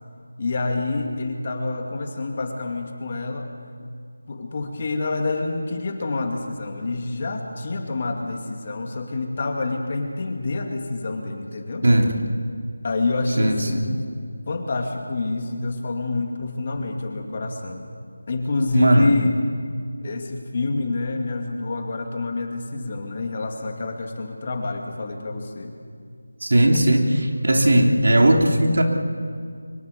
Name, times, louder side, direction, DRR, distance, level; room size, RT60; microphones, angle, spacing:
voice 1, 0.4-3.5 4.3-11.9 12.8-14.1 14.5-17.9 18.3-19.3 20.0-25.8, left 3 dB, 35° left, 3 dB, 2.5 m, -27 dB
voice 2, 11.8-12.2 13.4-13.8 18.7-19.1 26.4-28.8, right 1 dB, 70° right, 2 dB, 3.2 m, -17 dB
24.0 x 20.5 x 7.0 m, 2.2 s
figure-of-eight pair, 170°, 0 cm